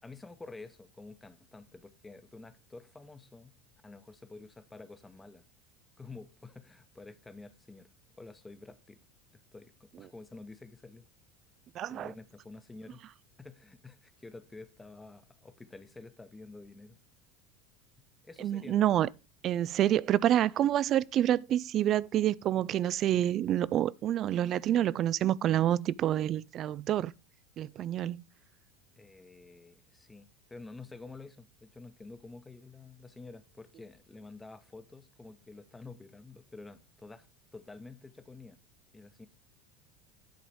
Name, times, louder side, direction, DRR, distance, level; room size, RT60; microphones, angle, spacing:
voice 1, 0.0-3.5 3.8-5.4 6.0-7.9 8.2-9.0 9.5-11.1 11.9-13.0 13.4-17.0 18.2-18.9 29.0-37.3 37.5-38.6 38.9-39.3, left 3 dB, 15° left, 0.9 m, -49 dB
voice 2, 11.8-12.1 18.4-19.1 19.4-27.1 27.6-28.2, right 11 dB, 45° right, 0.3 m, -28 dB
10.5 x 4.0 x 4.7 m
hypercardioid pair, 80°, 0 cm